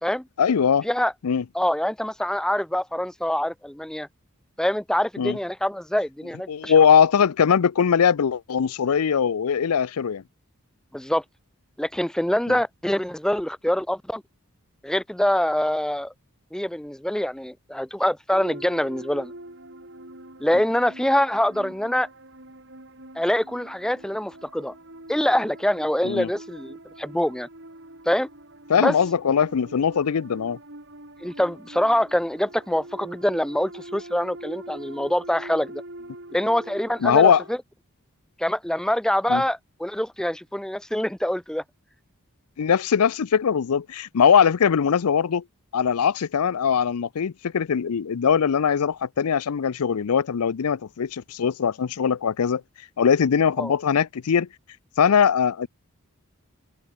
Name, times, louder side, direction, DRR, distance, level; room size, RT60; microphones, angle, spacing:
voice 1, 0.4-0.9 1.2-1.4 5.2-5.4 6.5-10.2 12.5-12.6 26.0-26.3 28.7-30.6 37.0-37.4 39.3-39.4 42.6-45.4 45.7-52.6 53.0-54.5 55.0-55.7, left 7 dB, 85° left, 0.5 m, -21 dB
voice 2, 1.5-4.1 4.6-6.7 10.9-11.2 11.8-14.2 14.8-16.1 16.5-19.3 20.4-22.1 23.2-24.7 25.1-27.5 28.1-28.3 28.8-29.0 31.2-35.8 36.3-37.6 38.4-41.6 53.6-53.7, left 1 dB, 5° left, 0.4 m, -25 dB
sound 1, 18.3-37.5, right 1 dB, 55° right, 4.7 m, -43 dB
open air
head